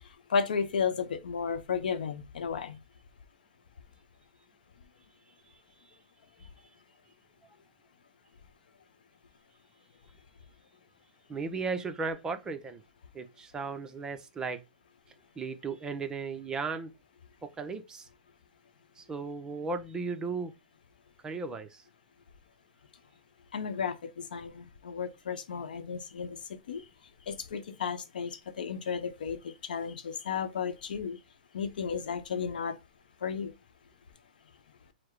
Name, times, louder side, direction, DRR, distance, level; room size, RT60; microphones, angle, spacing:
voice 1, 0.3-2.8 23.5-26.4 26.7-26.8 27.3-31.2 31.5-32.8 33.2-33.5, left 6 dB, 70° left, 0.8 m, -33 dB
voice 2, 11.3-12.8 13.1-14.6 15.4-16.9 17.6-18.1 19.0-20.5 21.2-21.8, right 4 dB, 15° right, 0.6 m, -36 dB
4.7 x 2.1 x 4.6 m
hypercardioid pair, 130°, 5 cm